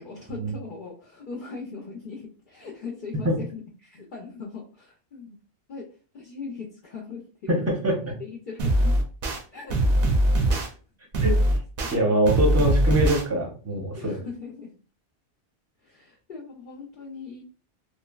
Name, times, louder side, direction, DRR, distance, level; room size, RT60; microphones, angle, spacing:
voice 1, 0.0-5.4 5.7-5.9 6.1-7.5 8.2-8.9 9.5-9.9 10.4-10.8 13.9-14.7 15.8-17.4, left 4 dB, 55° left, -2 dB, 0.6 m, -39 dB
voice 2, 7.5-8.2 11.2-11.3 11.9-14.1, right 1 dB, 15° right, 0 dB, 0.6 m, -23 dB
sound 1, 8.6-9.4 9.7-10.7 11.1-11.9 12.3-13.2, right 1 dB, 60° right, 0.7 m, -21 dB
3.2 x 2.0 x 2.2 m, 0.38 s
omnidirectional pair, 1.1 m